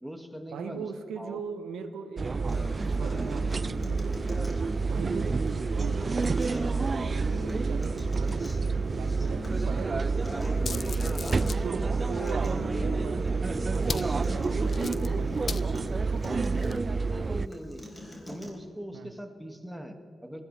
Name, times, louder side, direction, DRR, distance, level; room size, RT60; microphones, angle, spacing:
voice 1, 0.0-0.9 1.2-1.4 11.0-11.6 16.5-17.8 18.3-20.5, equal, 5° right, 4 dB, 2.3 m, -41 dB
voice 2, 0.5-4.5 4.9-10.5 11.6-16.8 18.9-19.1, right 6 dB, 85° right, 9 dB, 1.1 m, -40 dB
sound 1, 2.2-17.5, right 4 dB, 50° right, 0.3 m, -29 dB
Acoustic guitar, 2.5-18.5, equal, 15° left, 4.4 m, -40 dB
sound 2, 10.5-11.7 13.8-16.8, left 5 dB, 60° left, 0.6 m, -39 dB
20.5 x 15.5 x 3.5 m, 2.6 s
supercardioid pair, 45°, 0 cm